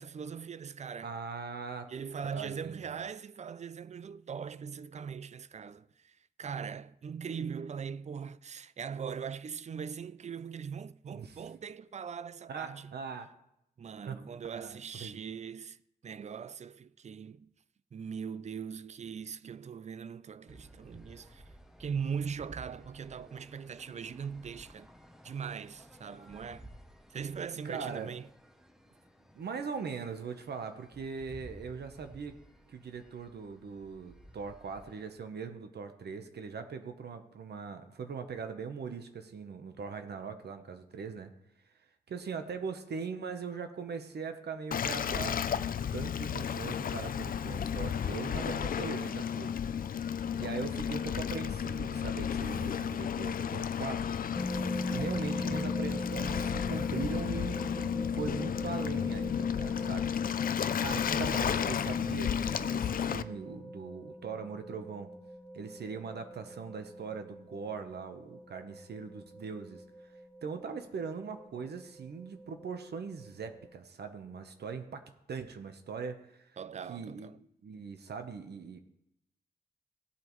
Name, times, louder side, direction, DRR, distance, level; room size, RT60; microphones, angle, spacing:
voice 1, 0.0-1.2 1.9-13.0 13.8-15.8 16.0-17.5 17.9-21.4 21.8-24.9 25.2-26.7 27.1-28.3 76.6-77.4, right 6 dB, 40° right, 0.4 m, -40 dB
voice 2, 1.0-1.9 2.3-2.8 11.1-11.4 12.5-13.3 14.1-14.2 14.5-15.2 27.6-28.1 29.3-32.3 32.7-41.3 42.1-49.5 50.4-54.1 54.9-65.1 65.5-69.8 70.4-76.5 76.9-78.8, right 5 dB, 70° right, 0.9 m, -41 dB
sound 1, 20.5-35.2, right 1 dB, ahead, 0.9 m, -55 dB
Waves surf, 44.7-63.2, left 8 dB, 55° left, 0.4 m, -33 dB
sound 2, 54.3-73.7, left 1 dB, 15° left, 2.5 m, -42 dB
17.0 x 8.4 x 3.1 m
wide cardioid pair, 135°, 17 cm